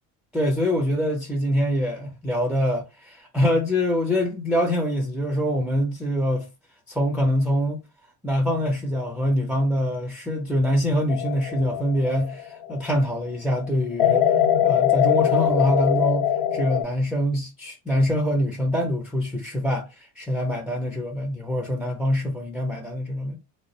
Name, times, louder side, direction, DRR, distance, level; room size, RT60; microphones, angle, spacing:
voice 1, 0.3-6.5 6.9-7.8 8.2-14.3 14.6-16.3 16.5-19.9 20.2-23.4, equal, ahead, 0.3 m, -24 dB
sound 1, 11.1-12.9 14.0-16.8, left 10 dB, 65° left, 0.7 m, -22 dB
2.4 x 2.0 x 2.7 m
cardioid pair, 105°, 42 cm